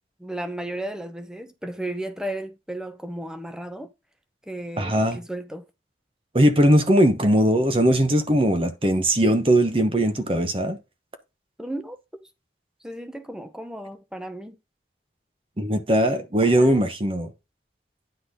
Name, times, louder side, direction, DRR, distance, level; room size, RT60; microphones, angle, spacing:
voice 1, 0.2-3.9 4.5-5.6 11.6-12.0 12.8-14.6 16.4-16.9, right 1 dB, 5° right, 0.8 m, -34 dB
voice 2, 4.8-5.2 6.3-10.8 15.6-17.3, right 1 dB, 30° right, 1.0 m, -20 dB
9.8 x 4.0 x 5.2 m
head